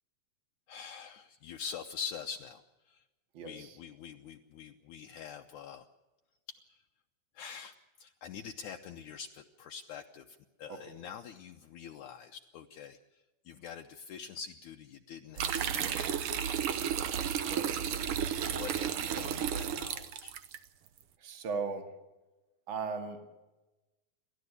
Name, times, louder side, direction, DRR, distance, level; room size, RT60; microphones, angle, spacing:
voice 1, 0.7-3.0 3.4-5.9 6.7-6.8 7.3-13.0 13.5-16.6 18.5-20.4, left 7 dB, 70° left, 4 dB, 2.1 m, -45 dB
voice 2, 3.3-3.8 10.7-11.0 17.4-17.7 21.2-21.9 22.7-23.3, right 4 dB, 40° right, 5 dB, 2.7 m, -38 dB
sound 1, 15.4-20.6, right 8 dB, 70° right, 1.4 m, -33 dB
29.5 x 13.0 x 8.2 m, 1.1 s
omnidirectional pair, 3.9 m